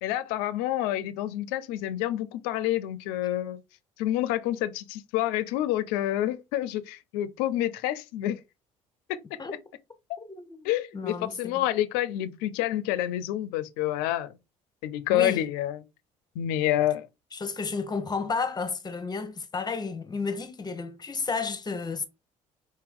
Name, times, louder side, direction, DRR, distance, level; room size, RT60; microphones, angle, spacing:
voice 1, 0.0-3.6 4.0-8.4 9.1-9.2 10.6-14.3 14.8-15.8 16.4-17.1, left 13 dB, 80° left, 0.5 m, -28 dB
voice 2, 10.2-11.6 15.1-15.4 17.3-22.1, left 4 dB, 25° left, 0.9 m, -32 dB
4.5 x 2.9 x 3.6 m
supercardioid pair, 70°, 16 cm